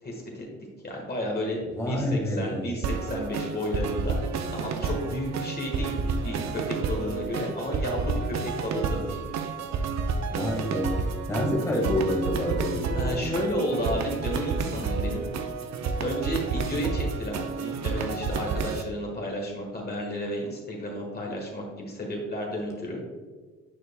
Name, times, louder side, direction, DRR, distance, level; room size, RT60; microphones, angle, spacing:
voice 1, 0.0-0.4 0.8-4.2 4.5-8.1 8.4-9.2 12.9-15.3 16.0-23.0, equal, 30° left, -1 dB, 1.6 m, -32 dB
voice 2, 1.7-2.7 10.3-13.4, left 1 dB, 10° left, -2 dB, 1.6 m, -28 dB
sound 1, 2.8-18.8, right 4 dB, 65° right, 0.7 m, -30 dB
9.8 x 4.5 x 2.3 m, 1.4 s
cardioid pair, 90°, 30 cm